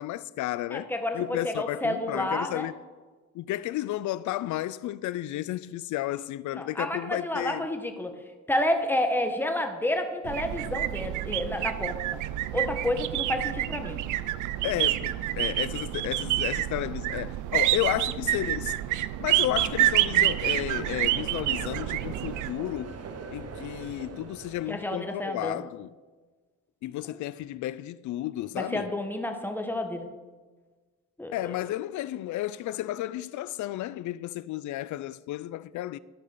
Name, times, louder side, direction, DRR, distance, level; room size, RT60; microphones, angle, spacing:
voice 1, 0.0-2.7 3.3-7.7 14.6-18.8 19.2-22.9 23.3-25.9 26.8-28.9 31.3-36.0, left 14 dB, 75° left, 0.4 m, -32 dB
voice 2, 0.7-2.7 6.5-8.1 8.5-12.0 12.5-14.0 24.7-25.7 28.6-30.1 31.2-31.5, left 1 dB, 5° left, 1.5 m, -30 dB
sound 1, 10.2-22.5, right 14 dB, 85° right, 0.5 m, -28 dB
sound 2, 19.5-25.1, right 5 dB, 55° right, 1.1 m, -41 dB
12.5 x 5.5 x 6.8 m
cardioid pair, 90°, 30 cm